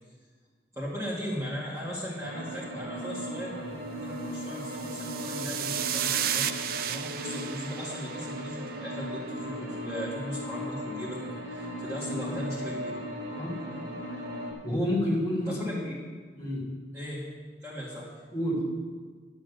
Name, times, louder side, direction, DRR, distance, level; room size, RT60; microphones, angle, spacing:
voice 1, 0.7-11.2 11.5-13.0 15.5-16.0 16.9-17.2 17.6-18.1, equal, 15° right, -7 dB, 2.3 m, -37 dB
sound 1, 2.2-14.5, equal, 80° right, 2.3 m, -37 dB
sound 2, 4.5-9.0, right 10 dB, 50° right, 0.4 m, -33 dB
voice 2, 14.6-15.8 16.4-16.6 18.3-18.6, left 1 dB, 20° left, -5 dB, 2.8 m, -29 dB
11.5 x 6.4 x 6.8 m, 1.5 s
head